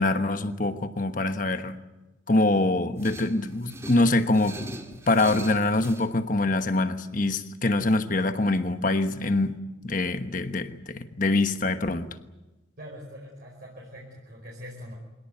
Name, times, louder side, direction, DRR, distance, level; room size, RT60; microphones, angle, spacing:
voice 1, 0.0-1.8 2.3-12.1, left 2 dB, 40° left, 1.2 m, -25 dB
sound 1, 3.0-6.1, right 2 dB, 15° right, 2.1 m, -41 dB
voice 2, 12.8-15.0, equal, 50° right, 5.2 m, -43 dB
25.5 x 18.0 x 9.2 m
head